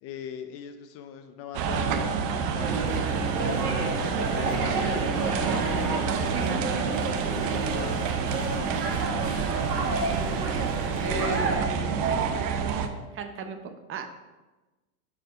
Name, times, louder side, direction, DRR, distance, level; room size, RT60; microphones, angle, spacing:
voice 1, 0.0-3.0 4.3-6.1 7.4-8.8 11.0-12.1, left 8 dB, 35° left, 8 dB, 0.4 m, -40 dB
sound 1, 1.5-12.9, right 6 dB, 55° right, 0.8 m, -28 dB
big crowd chatter, 2.6-11.6, right 2 dB, 90° right, 1.7 m, -31 dB
voice 2, 5.3-7.0 11.0-12.3 13.1-14.1, right 5 dB, 25° right, 7 dB, 0.7 m, -36 dB
6.1 x 4.9 x 4.6 m, 1.1 s
hypercardioid pair, 110°, 47 cm